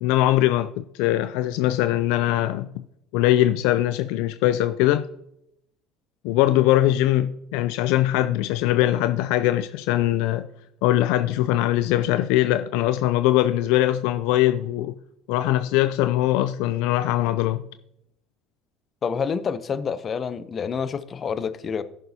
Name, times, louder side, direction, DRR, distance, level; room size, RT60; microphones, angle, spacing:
voice 1, 0.0-2.8 3.1-5.1 6.2-10.5 10.8-15.0 15.3-17.6, left 14 dB, 75° left, 0.4 m, -21 dB
voice 2, 19.0-21.8, left 6 dB, 40° left, 0.7 m, -28 dB
14.5 x 6.6 x 2.8 m
hypercardioid pair, 75°, 0 cm